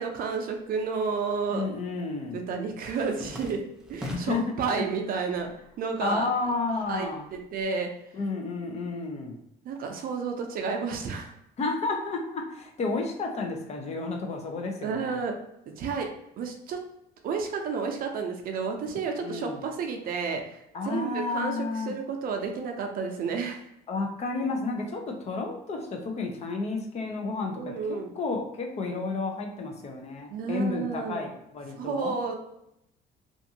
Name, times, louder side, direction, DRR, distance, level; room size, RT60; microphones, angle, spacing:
voice 1, 0.0-1.7 2.3-3.6 3.9-5.5 5.8-6.3 6.9-7.9 9.6-11.3 14.8-15.4 15.7-16.1 16.4-16.8 17.2-21.6 21.9-23.6 27.6-28.1 30.3-31.3 31.8-32.3, right 5 dB, 60° right, 3 dB, 0.5 m, -31 dB
sound 1, 0.7-1.5 1.8-4.6 5.0-5.7 6.0-7.6, left 1 dB, 5° right, 0.4 m, -43 dB
voice 2, 1.5-2.4 4.0-4.4 4.7-4.8 6.0-7.3 8.1-9.4 11.6-15.2 19.2-19.7 20.7-21.9 23.9-32.2, left 3 dB, 40° left, 2 dB, 0.6 m, -31 dB
2.5 x 2.4 x 2.7 m, 0.80 s
cardioid pair, 110°, 17 cm